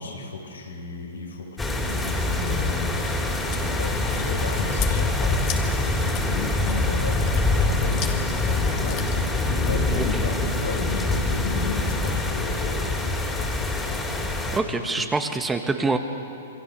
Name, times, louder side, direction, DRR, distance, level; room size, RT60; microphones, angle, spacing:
voice 1, 0.0-14.1 14.5-15.1, left 4 dB, 90° left, 1 dB, 5.3 m, -35 dB
sound 1, 1.6-14.6, left 2 dB, 10° left, 3.6 m, -25 dB
Chewing mastication, 3.3-12.1, left 10 dB, 40° left, 2.2 m, -41 dB
voice 2, 14.5-16.0, right 3 dB, 10° right, 6 dB, 1.6 m, -25 dB
27.5 x 22.5 x 6.9 m, 2.7 s
hypercardioid pair, 120°, 0 cm